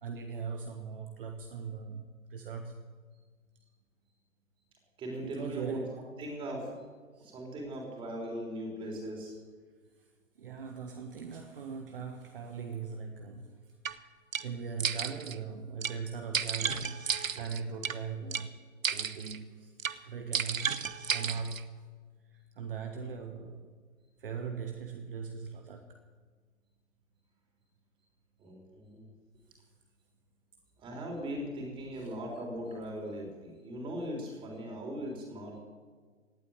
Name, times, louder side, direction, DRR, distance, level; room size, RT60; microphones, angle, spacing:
voice 1, 0.0-2.8 5.2-5.9 7.1-7.3 10.4-13.5 14.4-18.5 18.9-19.7 20.0-20.7 21.1-21.6 22.3-23.7 24.2-26.0 31.9-32.1, right 5 dB, 40° right, 5 dB, 1.4 m, -40 dB
voice 2, 5.0-5.8 6.2-6.9 7.2-9.3 28.4-29.1 30.8-35.6, equal, 10° right, 0 dB, 3.5 m, -39 dB
sound 1, 13.9-14.0 14.3-14.5 14.8-15.4 15.8-16.0 16.3-18.0 18.3-18.5 18.8-19.4 19.8-20.0 20.3-21.6, right 6 dB, 70° right, 1.2 m, -33 dB
17.5 x 8.5 x 9.4 m, 1.5 s
figure-of-eight pair, 140°, 41 cm